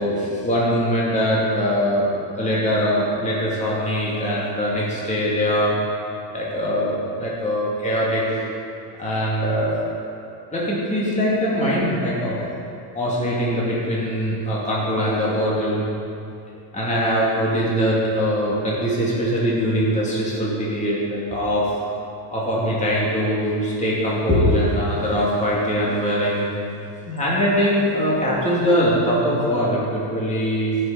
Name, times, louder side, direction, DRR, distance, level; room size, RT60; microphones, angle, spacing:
voice 1, 0.0-2.1 2.4-5.8 6.3-8.2 9.0-9.8 10.5-12.6 12.9-15.9 16.7-21.8 22.3-26.5 27.1-30.8, equal, 15° left, -6 dB, 2.6 m, -22 dB
15.5 x 6.8 x 5.1 m, 2.6 s
cardioid pair, 140°, 41 cm